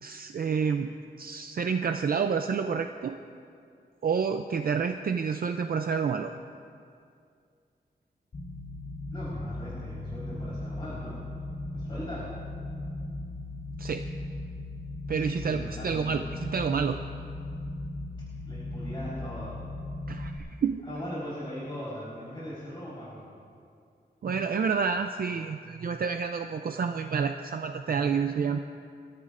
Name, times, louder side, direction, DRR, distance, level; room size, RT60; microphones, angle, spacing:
voice 1, 0.0-3.1 4.0-6.3 13.8-14.1 15.1-17.0 20.1-20.8 24.2-28.6, right 6 dB, 55° right, 6 dB, 0.5 m, -29 dB
sound 1, 8.3-20.4, left 2 dB, 65° left, 3.3 m, -37 dB
voice 2, 9.1-11.2 11.7-12.4 15.1-16.2 18.4-19.6 20.8-23.3, equal, 30° left, -10 dB, 4.0 m, -39 dB
24.0 x 13.5 x 2.6 m, 2.3 s
wide cardioid pair, 165°, 18 cm